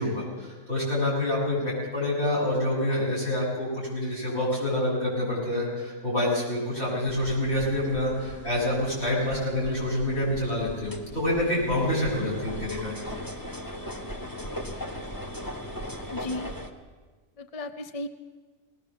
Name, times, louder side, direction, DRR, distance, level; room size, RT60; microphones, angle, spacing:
voice 1, 0.0-12.9, left 1 dB, 55° left, -6 dB, 7.8 m, -27 dB
sound 1, 7.1-16.7, equal, 15° left, 1.4 m, -38 dB
voice 2, 16.1-16.5 17.4-18.1, left 2 dB, 35° left, 8 dB, 0.6 m, -34 dB
19.5 x 19.5 x 7.0 m, 1.4 s
omnidirectional pair, 1.4 m